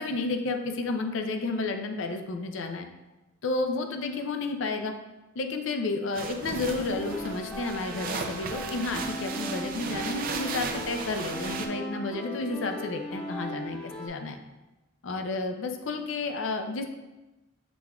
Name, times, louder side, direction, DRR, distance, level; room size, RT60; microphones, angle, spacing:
voice 1, 0.0-2.9 3.4-4.9 5.4-14.4 15.0-16.8, left 3 dB, 70° left, 5 dB, 0.5 m, -31 dB
sound 1, 6.1-11.7, right 5 dB, 45° right, 0.4 m, -36 dB
sound 2, 6.9-14.1, equal, 5° left, 0.7 m, -37 dB
6.0 x 3.6 x 2.3 m, 1.1 s
head